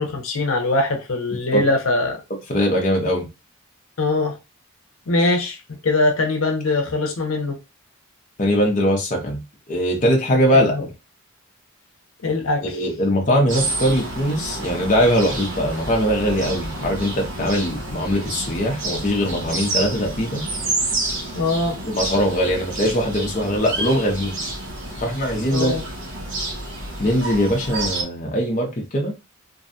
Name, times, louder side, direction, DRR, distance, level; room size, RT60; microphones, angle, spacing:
voice 1, 0.0-2.2 4.0-4.4 5.1-7.6 10.5-10.9 12.2-12.8 21.3-21.8 25.5-25.8, left 2 dB, 80° left, 0.7 m, -22 dB
voice 2, 2.5-3.3 8.4-9.4 9.7-10.8 12.6-20.4 21.8-24.4 25.0-25.7 27.0-29.1, equal, 40° left, 0.7 m, -21 dB
sound 1, 13.5-28.0, right 2 dB, 65° right, 1.2 m, -29 dB
2.6 x 2.2 x 2.6 m
head